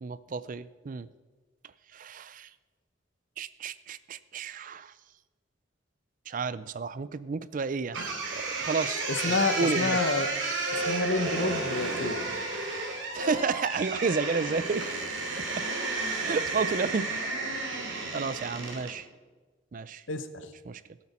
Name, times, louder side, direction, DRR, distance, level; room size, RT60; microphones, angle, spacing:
voice 1, 0.0-1.1 1.9-2.5 3.4-4.9 6.3-8.0 8.3-10.0 13.1-14.8 15.4-15.7 16.2-17.3 18.1-19.1 19.7-20.0 20.7-20.8, right 4 dB, 40° right, 16 dB, 0.4 m, -31 dB
sound 1, 7.9-19.0, right 3 dB, 70° right, 2.5 m, -32 dB
voice 2, 9.1-10.3 10.7-12.1 20.1-20.5, left 4 dB, 70° left, 10 dB, 1.0 m, -29 dB
18.0 x 8.7 x 4.3 m, 1.3 s
head